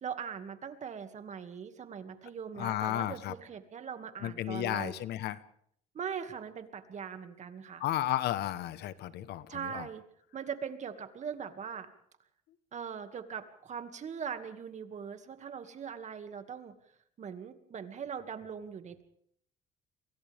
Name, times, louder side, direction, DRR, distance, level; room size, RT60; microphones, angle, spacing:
voice 1, 0.0-4.9 5.9-7.8 9.5-10.0 10.3-11.9 12.7-16.7 17.2-19.0, right 7 dB, 45° right, 8 dB, 2.3 m, -41 dB
voice 2, 2.6-3.3 4.2-5.4 7.8-9.9, left 13 dB, 75° left, 14 dB, 1.2 m, -33 dB
30.0 x 24.0 x 3.6 m, 0.65 s
cardioid pair, 110°, 17 cm